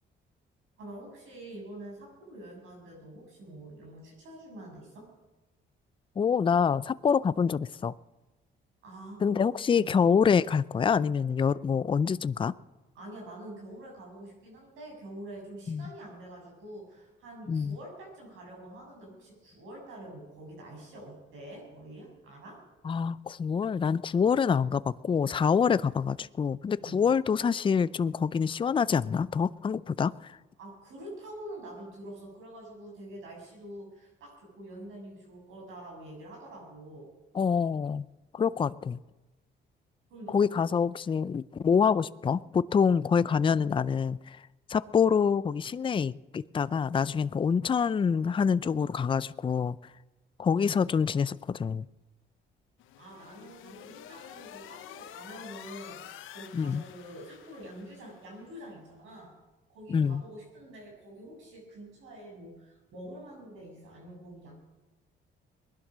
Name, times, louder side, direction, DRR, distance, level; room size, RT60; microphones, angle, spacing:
voice 1, 0.8-5.1 8.8-10.0 13.0-22.6 25.5-25.6 26.8-27.0 30.6-37.1 40.1-40.5 53.0-59.3 59.7-64.5, right 1 dB, 85° right, 0 dB, 7.0 m, -46 dB
voice 2, 6.2-7.9 9.2-12.5 15.7-15.9 17.5-17.8 22.8-30.4 37.3-38.0 38.3-39.0 40.3-44.4 44.7-49.8 50.4-51.8 56.5-56.8 59.9-60.2, left 6 dB, 25° left, 17 dB, 0.4 m, -26 dB
sound 1, 52.8-58.4, left 12 dB, 85° left, 0.9 m, -48 dB
20.0 x 11.5 x 6.2 m, 1.1 s
cardioid pair, 90°, 20 cm